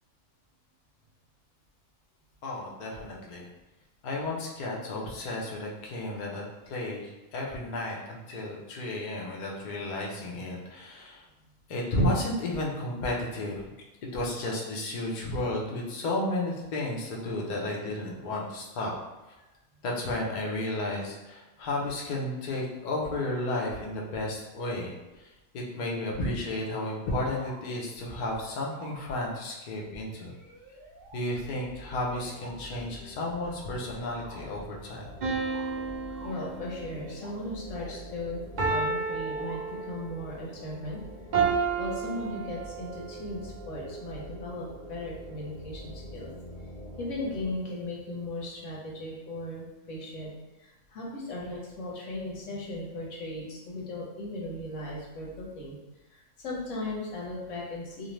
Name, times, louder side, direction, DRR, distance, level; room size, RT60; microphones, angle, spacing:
voice 1, 2.4-3.5 4.0-11.2 11.7-13.6 14.0-18.9 19.8-30.3 31.1-35.1, left 1 dB, 60° left, -2 dB, 0.5 m, -33 dB
sound 1, 27.0-27.6 27.9-28.0 28.4-29.4 30.2-31.2 32.0-32.6 33.3-34.6 35.3-36.6 36.9-37.4 37.7-38.1 39.0-39.6, right 2 dB, 35° right, 0.7 m, -50 dB
sound 2, 31.3-47.5, equal, 25° left, 1.0 m, -46 dB
sound 3, 35.2-37.1 38.6-40.2 41.3-43.0, right 5 dB, 80° right, 0.4 m, -31 dB
voice 2, 36.2-41.0 41.4-46.3 47.0-50.3 50.6-55.8 56.1-58.1, left 1 dB, 75° left, -3 dB, 1.1 m, -37 dB
2.5 x 2.1 x 3.0 m, 1.1 s
omnidirectional pair, 1.3 m